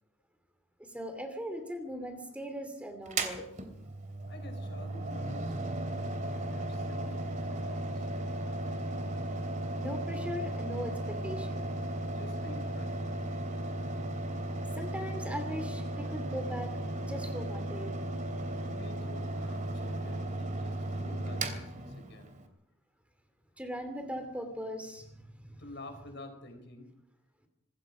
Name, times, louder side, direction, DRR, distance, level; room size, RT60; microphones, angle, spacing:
voice 1, 0.8-3.5 9.7-11.7 14.7-16.8 17.1-17.9 23.6-25.6, equal, 5° right, 6 dB, 2.7 m, -39 dB
Mechanical fan, 3.1-22.4, right 1 dB, 40° right, 3.0 m, -35 dB
voice 2, 4.3-8.1 12.1-13.2 18.6-22.4 25.6-26.9, left 2 dB, 55° left, 6 dB, 5.3 m, -49 dB
25.5 x 21.0 x 5.0 m, 0.80 s
head